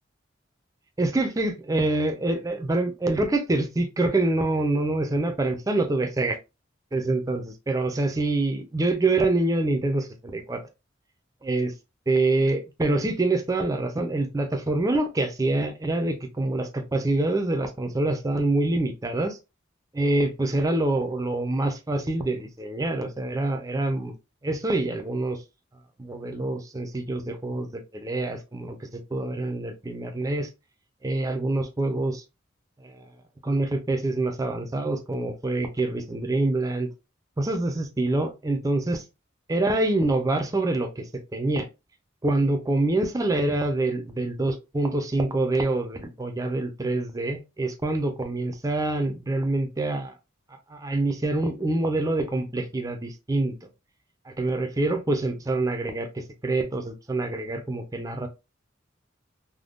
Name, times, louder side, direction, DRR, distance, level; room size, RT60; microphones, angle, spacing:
voice 1, 1.0-6.4 6.9-10.6 11.4-11.7 12.1-19.4 19.9-24.2 24.4-25.4 26.0-30.5 31.0-32.2 32.8-33.1 33.4-36.9 37.4-39.0 39.5-41.7 42.2-50.2 50.7-53.6 54.3-58.3, right 2 dB, 15° right, 0.4 m, -26 dB
3.5 x 2.1 x 2.4 m
head